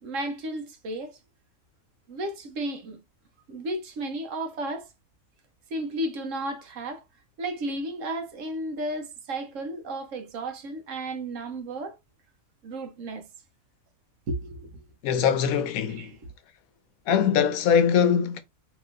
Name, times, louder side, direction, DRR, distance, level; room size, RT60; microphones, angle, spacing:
voice 1, 0.0-1.2 2.1-3.0 3.5-4.9 5.7-7.0 7.4-12.0 12.6-13.3 14.3-14.8 15.9-16.2, right 1 dB, 70° right, 1.2 m, -33 dB
voice 2, 15.0-16.1 17.1-18.4, left 7 dB, 85° left, 1.1 m, -22 dB
3.0 x 3.0 x 3.7 m
omnidirectional pair, 1.4 m